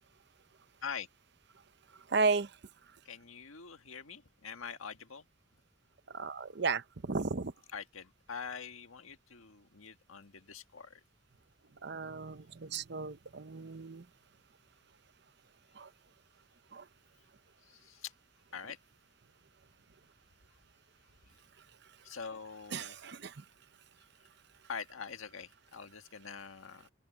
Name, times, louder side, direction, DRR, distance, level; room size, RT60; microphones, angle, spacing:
voice 1, 1.9-2.6 6.1-7.5 11.8-14.1 15.7-15.9 16.7-16.9 21.6-21.7 22.7-23.5, right 4 dB, 55° right, 0.8 m, -34 dB
voice 2, 3.0-5.2 7.7-11.0 17.6-18.1 18.5-18.8 22.0-23.0 24.7-26.9, left 6 dB, 90° left, 1.7 m, -44 dB
open air
head